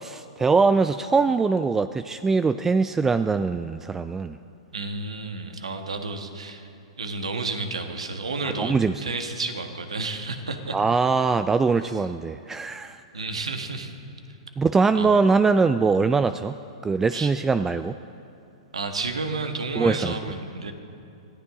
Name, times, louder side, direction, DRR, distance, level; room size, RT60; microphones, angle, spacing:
voice 1, 0.0-4.4 8.6-9.0 10.7-13.0 14.6-16.6 16.8-18.0 19.8-20.1, right 4 dB, 10° right, 12 dB, 0.3 m, -22 dB
voice 2, 4.7-6.7 7.0-8.7 9.0-10.8 11.8-11.9 13.1-14.0 14.9-15.2 17.1-17.3 18.7-20.7, right 3 dB, 85° right, 5 dB, 1.6 m, -31 dB
24.0 x 15.5 x 3.8 m, 2.6 s
hypercardioid pair, 120°, 3 cm